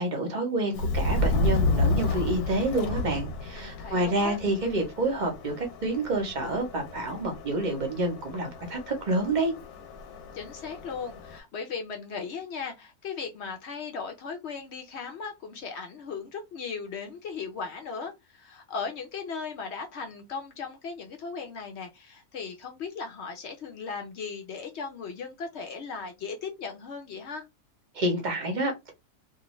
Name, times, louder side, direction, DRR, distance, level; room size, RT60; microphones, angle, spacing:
voice 1, 0.0-9.5 27.9-28.9, right 2 dB, 45° right, 0.6 m, -28 dB
Subway metro underground, 0.7-11.4, left 2 dB, 90° left, 1.1 m, -31 dB
voice 2, 3.5-4.4 10.3-27.4, left 5 dB, 65° left, 0.7 m, -37 dB
2.5 x 2.4 x 3.0 m
omnidirectional pair, 1.6 m